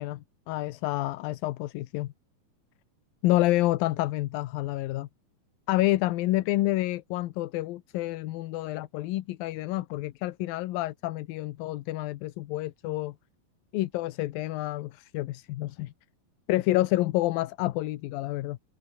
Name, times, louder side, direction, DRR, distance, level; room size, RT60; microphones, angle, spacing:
voice 1, 0.0-2.1 3.2-5.1 5.7-13.2 13.7-15.9 16.5-18.6, left 17 dB, 80° left, 2.6 m, -28 dB
omnidirectional pair, 4.2 m